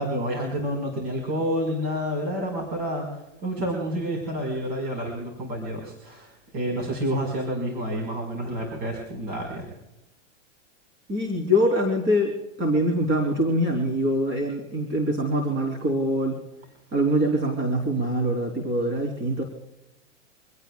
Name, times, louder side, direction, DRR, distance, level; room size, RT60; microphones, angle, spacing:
voice 1, 0.0-9.7, equal, 45° right, 1 dB, 5.2 m, -29 dB
voice 2, 11.1-16.4 16.9-19.4, equal, 30° right, 2 dB, 3.9 m, -24 dB
26.5 x 18.0 x 2.4 m, 0.91 s
hypercardioid pair, 145°, 38 cm